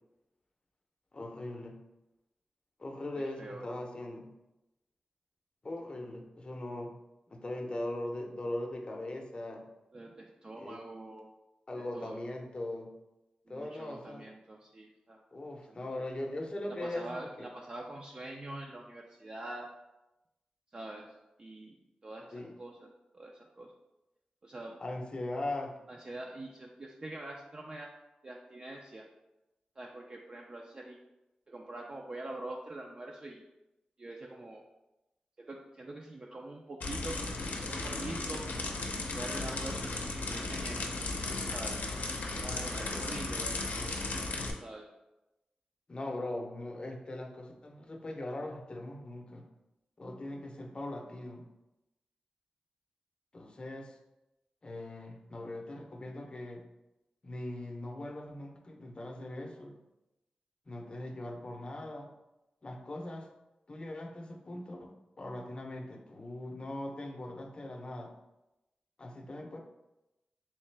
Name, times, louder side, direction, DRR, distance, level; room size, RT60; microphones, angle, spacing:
voice 1, 1.1-1.8 2.8-4.3 5.6-6.9 7.3-9.6 10.6-10.8 11.7-12.9 13.5-14.3 15.3-17.5 22.3-22.5 24.8-25.8 42.8-43.2 45.9-49.5 50.0-51.4 53.3-54.0 54.6-56.6 57.2-59.8 60.7-62.1 62.6-63.3 63.7-68.1 69.0-69.6, left 1 dB, 35° left, 2 dB, 0.6 m, -40 dB
voice 2, 3.1-3.8 9.9-11.3 11.9-12.2 13.5-15.2 15.7-15.8 16.7-19.7 20.7-21.8 22.0-23.7 24.4-24.8 25.9-28.0 28.2-29.1 29.8-31.0 31.5-33.5 34.0-34.6 35.4-38.4 39.1-40.9 41.5-41.9 42.4-44.0 44.6-44.9, right 2 dB, 35° right, 0 dB, 0.4 m, -44 dB
sound 1, 36.8-44.5, left 3 dB, 85° left, 0.5 m, -36 dB
3.6 x 3.2 x 3.3 m, 0.96 s
wide cardioid pair, 85°, 3 cm